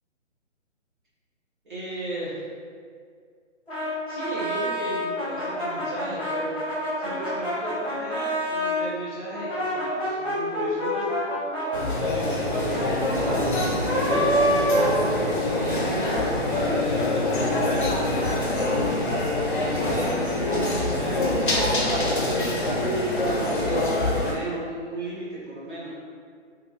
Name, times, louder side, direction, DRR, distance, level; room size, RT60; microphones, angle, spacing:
voice 1, 1.6-2.4 4.1-6.5 7.0-11.3 11.5-11.7 12.0-14.4 15.3-15.9 16.5-18.8 19.5-22.2 23.3-23.8 24.2-25.9, right 1 dB, 40° right, -10 dB, 1.1 m, -36 dB
Brass instrument, 3.7-8.8 9.3-15.6, equal, 5° left, 0.6 m, -27 dB
sound 1, 11.7-24.3, left 1 dB, 40° left, 0.6 m, -25 dB
3.2 x 2.5 x 3.0 m, 2.1 s
hypercardioid pair, 170°, 37 cm